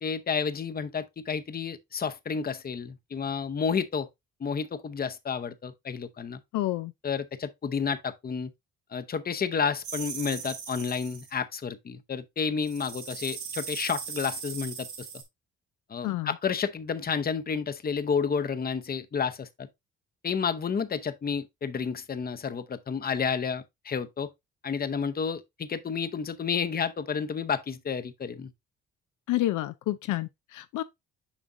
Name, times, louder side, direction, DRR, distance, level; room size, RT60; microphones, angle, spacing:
voice 1, 0.0-4.1 4.4-6.4 7.0-8.5 8.9-15.1 15.9-19.7 20.2-24.3 24.6-28.5, left 6 dB, 30° left, 0.8 m, -31 dB
voice 2, 6.5-6.9 16.0-16.3 29.3-30.8, left 15 dB, 80° left, 0.5 m, -29 dB
sound 1, 9.8-11.3 12.6-15.2, right 6 dB, 75° right, 2.5 m, -38 dB
7.3 x 5.1 x 2.6 m
cardioid pair, 90°, 30 cm